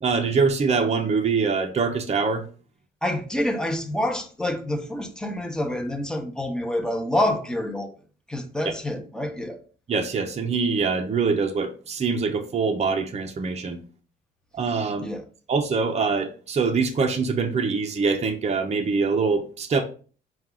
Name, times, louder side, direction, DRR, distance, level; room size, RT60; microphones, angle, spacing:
voice 1, 0.0-2.4 9.9-13.8 14.5-15.1 15.5-19.8, right 4 dB, 35° right, 0.6 m, -24 dB
voice 2, 3.0-7.9 8.3-9.6 15.0-15.2, left 1 dB, 5° left, 0.8 m, -27 dB
4.4 x 2.4 x 3.7 m
cardioid pair, 90°, 20 cm